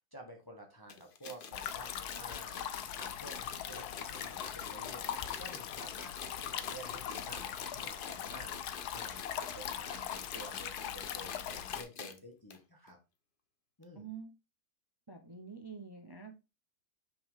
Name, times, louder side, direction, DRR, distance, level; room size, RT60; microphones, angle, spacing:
voice 1, 0.1-13.0 13.8-14.1, right 1 dB, 15° left, 2 dB, 1.3 m, -51 dB
sound 1, 0.9-12.2 12.5-12.6 12.9-13.0 13.8-13.9, left 5 dB, 50° left, 0.6 m, -47 dB
sound 2, 1.5-11.8, left 10 dB, 70° left, 1.2 m, -41 dB
voice 2, 13.9-14.3 15.1-16.4, right 5 dB, 25° right, 4 dB, 0.5 m, -47 dB
6.1 x 6.0 x 3.7 m, 0.27 s
omnidirectional pair, 1.9 m